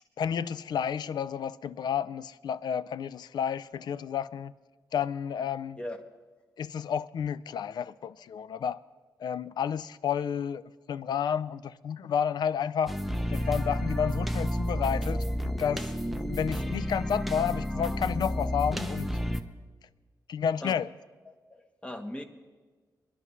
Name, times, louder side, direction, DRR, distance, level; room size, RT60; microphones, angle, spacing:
voice 1, 0.2-4.5 4.9-5.8 6.6-8.8 9.2-10.6 10.9-13.0 13.3-15.2 15.6-15.9 16.3-19.2 20.3-20.9, left 8 dB, 80° left, 0.4 m, -31 dB
sound 1, 12.9-19.4, equal, ahead, 0.6 m, -31 dB
voice 2, 21.3-22.2, left 1 dB, 15° left, 1.0 m, -39 dB
25.0 x 11.0 x 3.1 m
wide cardioid pair, 145°, 7 cm